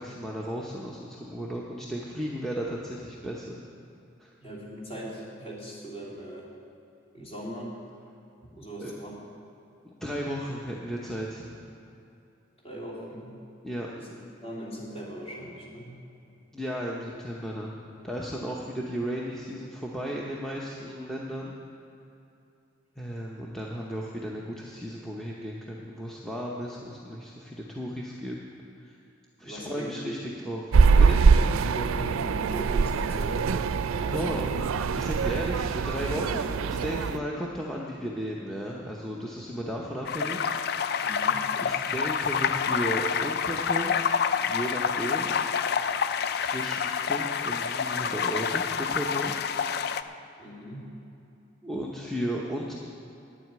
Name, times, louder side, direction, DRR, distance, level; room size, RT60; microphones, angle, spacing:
voice 1, 0.0-3.6 4.2-4.3 8.5-9.0 9.8-11.6 13.6-13.9 16.5-17.8 18.0-21.5 23.0-28.4 28.8-29.0 29.4-30.7 31.0-31.2 34.1-34.5 34.9-40.9 41.6-44.1 44.4-45.4 46.3-49.4 51.6-52.7, equal, ahead, -3 dB, 0.7 m, -34 dB
voice 2, 4.4-6.5 7.1-7.7 8.6-9.2 12.6-13.3 14.0-14.1 14.4-15.9 29.4-30.0 31.2-31.4 31.7-33.6 33.9-34.5 41.0-41.4 50.4-50.9, equal, 30° left, -6 dB, 3.0 m, -39 dB
sound 1, 30.7-37.2, right 5 dB, 90° right, 0.4 m, -23 dB
sound 2, 40.0-50.0, left 7 dB, 50° left, 0.4 m, -28 dB
9.8 x 7.8 x 9.2 m, 2.7 s
head